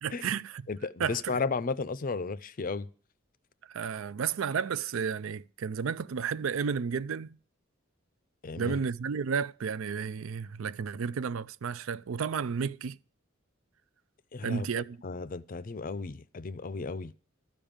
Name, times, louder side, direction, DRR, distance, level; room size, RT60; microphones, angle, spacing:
voice 1, 0.0-0.6 1.0-1.4 3.7-7.4 8.6-13.0 14.4-15.0, right 6 dB, 75° right, 0.4 m, -32 dB
voice 2, 0.7-2.9 8.4-8.8 14.3-17.1, left 4 dB, 40° left, 0.5 m, -34 dB
12.5 x 5.2 x 8.8 m
head